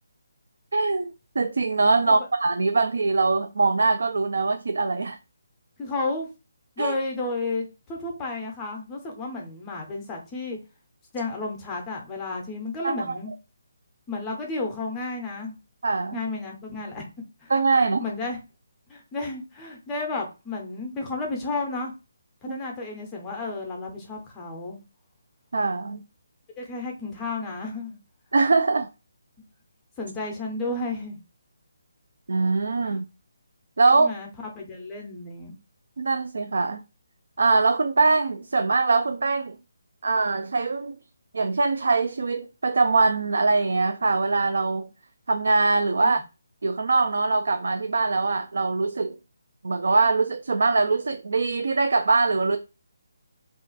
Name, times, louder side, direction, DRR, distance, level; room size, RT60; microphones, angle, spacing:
voice 1, 0.7-5.2 6.8-6.9 12.8-13.2 15.8-16.2 17.5-18.0 22.5-22.6 25.5-26.0 28.3-28.9 32.3-33.0 33.8-34.1 36.0-36.8 37.4-39.6 40.0-41.0 41.3-44.9 45.3-46.2 46.6-49.2 49.6-52.6, right 3 dB, 70° right, 0.3 m, -22 dB
voice 2, 5.8-6.3 6.8-10.6 11.1-13.3 14.1-15.6 16.1-17.0 17.4-17.5 17.8-18.4 18.9-21.9 22.4-24.8 26.6-28.0 30.0-31.2 32.8-33.0 33.9-35.6 46.0-46.2, left 3 dB, 10° left, 0.6 m, -32 dB
2.4 x 2.4 x 3.9 m
hypercardioid pair, 175°, 0 cm